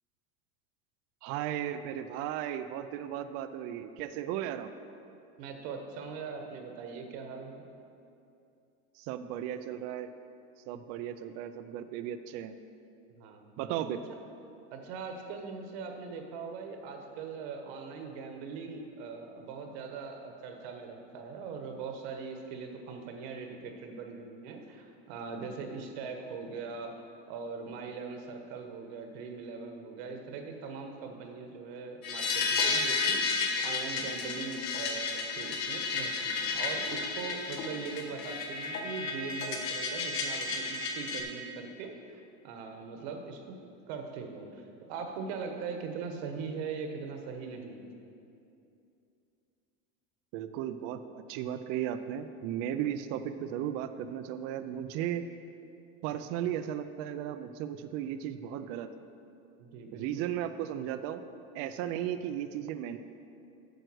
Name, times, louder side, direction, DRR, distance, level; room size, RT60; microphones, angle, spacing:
voice 1, 1.2-4.7 9.0-10.1 10.7-12.6 13.6-14.0 50.3-55.2 56.0-58.9 59.9-61.2 61.5-63.0, right 10 dB, 45° right, 10 dB, 0.4 m, -35 dB
voice 2, 5.4-7.6 13.1-13.6 14.7-43.5 43.9-47.9 59.6-60.3 61.9-62.1, right 5 dB, 60° right, 4 dB, 1.4 m, -41 dB
sound 1, 32.0-41.2, left 4 dB, 55° left, 1.5 m, -32 dB
9.3 x 6.4 x 6.2 m, 2.7 s
supercardioid pair, 150°, 35 cm